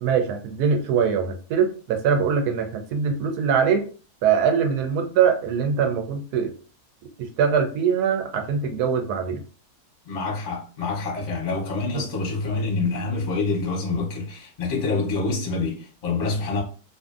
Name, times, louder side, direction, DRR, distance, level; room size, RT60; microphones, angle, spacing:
voice 1, 0.0-3.8 4.2-6.5 7.2-9.4 11.9-12.0, right 6 dB, 85° right, 1.1 m, -22 dB
voice 2, 10.1-16.6, left 3 dB, 40° left, 0.7 m, -26 dB
2.6 x 2.5 x 2.4 m
omnidirectional pair, 1.6 m